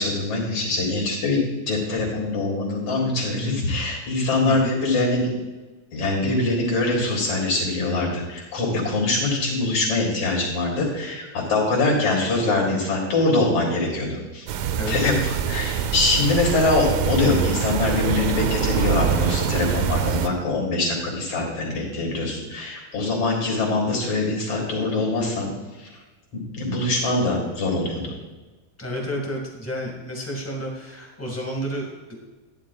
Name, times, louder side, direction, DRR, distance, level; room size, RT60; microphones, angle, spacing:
voice 1, 0.0-1.4 1.7-5.3 5.9-14.5 14.9-25.5 25.8-25.9 26.3-28.1, left 2 dB, 40° left, -1 dB, 4.3 m, -23 dB
sound 1, 14.5-20.3, right 9 dB, 80° right, 2.2 m, -24 dB
voice 2, 14.8-15.2 28.8-32.1, equal, 15° left, -1 dB, 0.6 m, -31 dB
15.0 x 11.5 x 2.5 m, 1.2 s
omnidirectional pair, 4.6 m